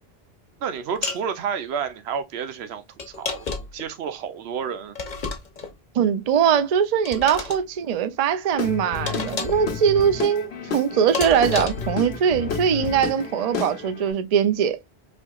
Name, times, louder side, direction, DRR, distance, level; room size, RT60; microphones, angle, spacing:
voice 1, 0.6-5.0, right 7 dB, 90° right, 0.9 m, -30 dB
sound 1, 1.0-1.3 3.0-3.8 4.9-5.7 7.0-7.6 9.1-9.7 11.1-11.9, left 4 dB, 50° left, 0.9 m, -30 dB
voice 2, 6.0-14.8, right 8 dB, 50° right, 0.5 m, -21 dB
Guitar / Drum, 8.5-14.1, left 5 dB, 85° left, 1.0 m, -31 dB
4.2 x 2.9 x 2.3 m
omnidirectional pair, 1.0 m